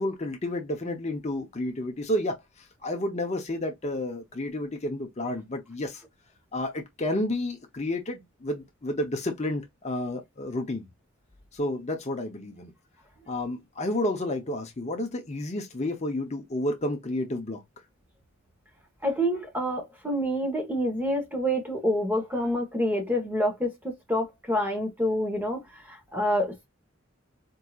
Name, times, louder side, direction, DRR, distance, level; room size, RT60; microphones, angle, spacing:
voice 1, 0.0-6.0 6.5-10.9 11.5-12.7 13.3-17.6, left 1 dB, 30° left, 0.6 m, -31 dB
voice 2, 19.0-26.7, equal, 10° right, 1.0 m, -27 dB
4.5 x 2.7 x 2.3 m
head